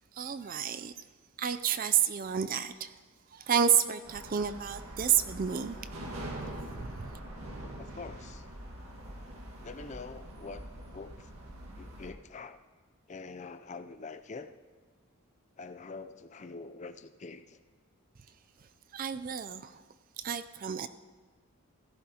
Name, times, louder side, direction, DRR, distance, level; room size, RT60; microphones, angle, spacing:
voice 1, 0.2-0.9 1.4-2.9 3.3-5.8 6.8-7.1 18.9-19.8 20.2-20.9, right 8 dB, 40° right, 12 dB, 0.4 m, -30 dB
sound 1, 4.0-12.1, right 1 dB, 80° right, 1.7 m, -44 dB
voice 2, 7.8-8.5 9.6-10.7 10.9-11.3 11.7-12.6 13.1-14.6 15.6-17.6, left 4 dB, 30° left, 10 dB, 0.4 m, -45 dB
17.0 x 15.0 x 2.9 m, 1.5 s
head